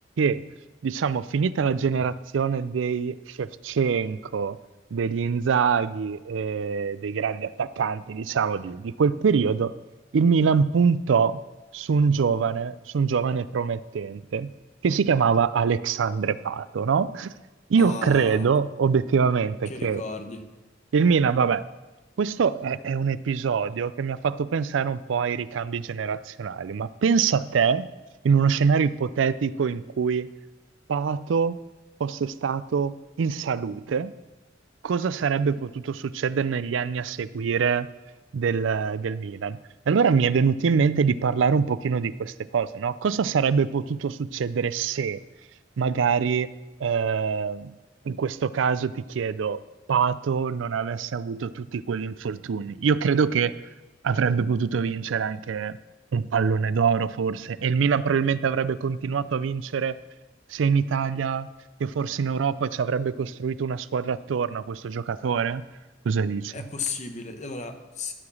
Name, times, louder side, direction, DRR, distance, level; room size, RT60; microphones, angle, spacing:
voice 1, 0.8-4.6 4.9-9.7 10.1-11.4 11.7-14.5 14.8-17.3 17.7-20.0 20.9-21.6 22.2-27.9 28.2-30.3 30.9-31.6 32.0-34.1 34.8-37.9 38.3-39.6 39.9-45.2 45.8-46.5 46.8-47.7 48.0-49.6 49.9-53.5 54.0-55.8 56.1-60.0 60.5-61.5 61.8-65.6 66.0-66.5, right 6 dB, 80° right, 16 dB, 0.4 m, -24 dB
voice 2, 17.8-18.5 19.6-20.4 66.5-68.1, left 4 dB, 40° left, 6 dB, 1.0 m, -34 dB
13.5 x 4.9 x 7.1 m, 1.1 s
head